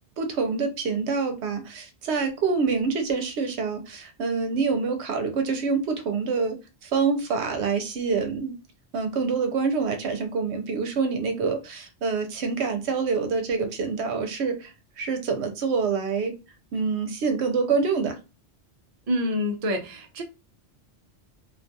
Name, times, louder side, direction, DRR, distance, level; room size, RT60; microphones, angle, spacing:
voice 1, 0.2-6.6 6.8-8.5 8.9-14.7 15.0-16.3 16.7-18.2, right 5 dB, 80° right, 0.9 m, -26 dB
voice 2, 19.1-20.2, left 1 dB, 45° right, 0.5 m, -27 dB
2.4 x 2.3 x 2.6 m
omnidirectional pair, 1.1 m